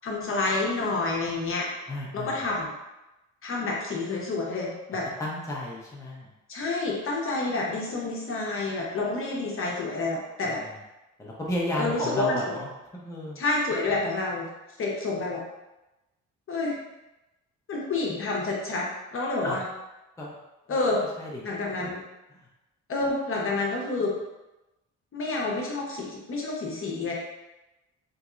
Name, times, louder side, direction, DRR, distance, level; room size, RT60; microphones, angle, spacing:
voice 1, 0.0-1.7 2.1-2.7 3.4-5.1 6.5-10.6 11.8-12.6 13.4-14.5 14.8-15.4 16.5-16.8 17.7-19.6 20.7-21.0 21.4-22.0 22.9-24.1 25.1-27.1, left 3 dB, 45° left, -3 dB, 0.8 m, -28 dB
voice 2, 1.9-2.4 5.2-6.3 10.4-10.6 11.2-13.4 19.4-19.6 20.2-20.3 21.2-21.4 21.8-21.9 22.3-22.5, left 1 dB, 10° left, -4 dB, 0.6 m, -33 dB
3.0 x 2.6 x 2.4 m, 0.99 s
cardioid pair, 90°, 30 cm